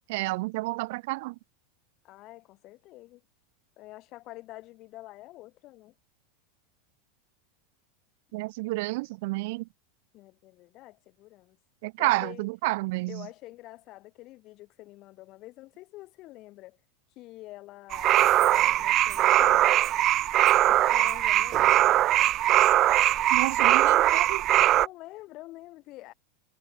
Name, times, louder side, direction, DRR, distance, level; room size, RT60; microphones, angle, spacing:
voice 1, 0.1-1.3 8.3-9.7 11.8-13.3 23.3-24.4, right 23 dB, 60° right, 2.2 m, -30 dB
voice 2, 2.0-3.2 3.8-5.9 10.1-11.6 12.0-12.5 13.1-16.8 17.2-19.9 20.7-21.9 24.7-26.1, left 18 dB, 50° left, 6.2 m, -47 dB
sound 1, 17.9-24.9, right 13 dB, 40° right, 0.6 m, -21 dB
hypercardioid pair, 90°, 0 cm